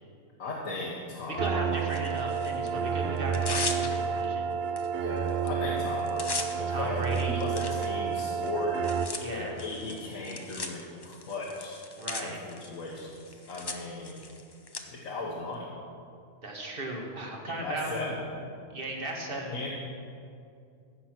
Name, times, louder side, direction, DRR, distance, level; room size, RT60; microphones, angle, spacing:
voice 1, 0.4-1.6 5.0-6.3 6.6-8.9 9.3-11.8 12.2-14.2 14.9-15.7 17.5-18.2 19.5-19.7, left 2 dB, 75° left, -3 dB, 1.6 m, -36 dB
voice 2, 1.3-4.5 6.7-7.4 9.2-9.6 12.0-12.4 16.4-18.0 18.7-19.7, right 1 dB, 45° right, 0 dB, 1.7 m, -36 dB
sound 1, 1.4-9.1, right 6 dB, 60° right, 0.7 m, -30 dB
Tearing, 1.9-2.7 3.2-4.3 4.8-4.9 5.2-5.5 5.8-14.8, left 3 dB, 25° left, 0.5 m, -39 dB
15.0 x 6.1 x 6.0 m, 2.5 s
omnidirectional pair, 1.4 m